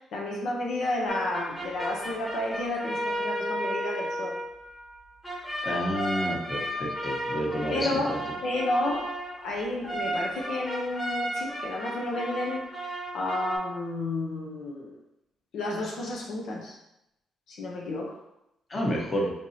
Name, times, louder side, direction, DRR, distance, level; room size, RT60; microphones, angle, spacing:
voice 1, 0.1-4.4 7.7-8.2 8.4-9.1 9.4-12.6 13.1-14.9 15.5-16.8 17.5-18.2, left 2 dB, 75° left, -2 dB, 0.6 m, -31 dB
sound 1, 1.1-13.6, right 1 dB, 15° left, 1.2 m, -34 dB
voice 2, 5.6-8.2 18.7-19.3, equal, 30° left, -2 dB, 1.0 m, -30 dB
4.5 x 2.8 x 2.7 m, 0.86 s
cardioid pair, 90°, 0 cm